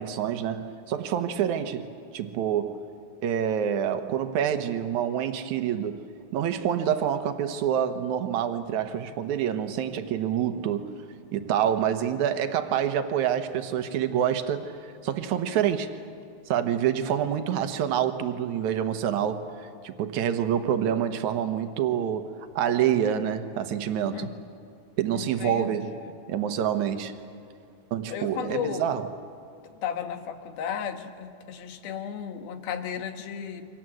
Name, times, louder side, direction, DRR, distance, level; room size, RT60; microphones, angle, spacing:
voice 1, 0.0-1.9 2.1-2.8 3.2-6.0 6.3-10.9 11.3-16.0 16.5-24.3 25.0-25.9 26.3-27.1 27.9-29.1, right 9 dB, 65° right, 2.3 m, -27 dB
voice 2, 25.1-26.1 28.1-29.0 29.6-33.6, left 8 dB, 80° left, 3.3 m, -34 dB
29.0 x 25.0 x 7.8 m
omnidirectional pair, 4.2 m